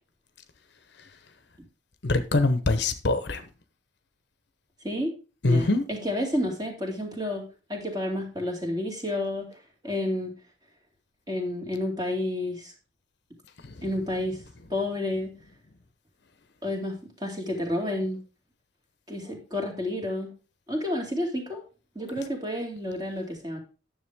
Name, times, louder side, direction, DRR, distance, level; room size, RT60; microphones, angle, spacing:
voice 1, 2.0-3.4 5.4-5.9 13.6-14.0, left 2 dB, 60° left, 0.9 m, -24 dB
voice 2, 5.4-9.5 9.8-10.3 11.3-12.7 13.8-14.4 14.7-15.3 16.6-18.2 19.1-20.3 20.7-21.6 22.0-23.6, left 1 dB, 20° right, 2.4 m, -30 dB
9.9 x 7.1 x 3.6 m
head